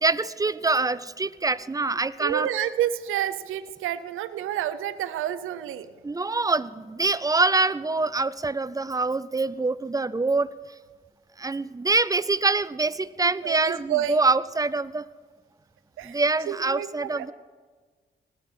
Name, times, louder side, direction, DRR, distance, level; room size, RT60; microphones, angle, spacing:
voice 1, 0.0-2.5 6.0-10.5 11.4-15.0 16.0-17.3, right 3 dB, 15° right, 17 dB, 0.5 m, -25 dB
voice 2, 2.2-5.9 13.2-14.2 16.0-17.3, right 11 dB, 90° right, 13 dB, 0.6 m, -29 dB
18.5 x 7.9 x 4.4 m, 1.4 s
supercardioid pair, 50°, 21 cm